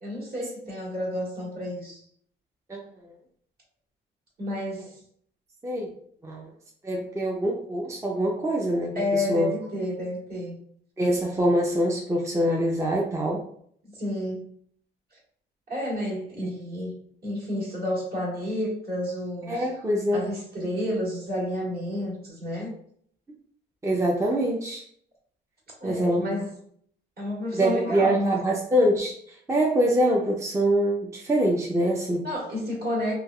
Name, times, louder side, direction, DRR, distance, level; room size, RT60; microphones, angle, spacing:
voice 1, 0.0-2.0 4.4-5.0 8.9-10.6 13.8-14.5 15.7-16.9 17.2-19.7 20.1-22.7 25.8-26.6 27.2-28.4 32.2-33.2, left 1 dB, 50° right, -5 dB, 1.5 m, -30 dB
voice 2, 6.8-9.5 11.0-13.4 16.4-16.5 19.5-20.3 23.8-24.8 25.8-26.4 27.5-32.3, equal, 15° right, -2 dB, 0.4 m, -24 dB
3.2 x 2.3 x 2.2 m, 0.64 s
cardioid pair, 90°, 20 cm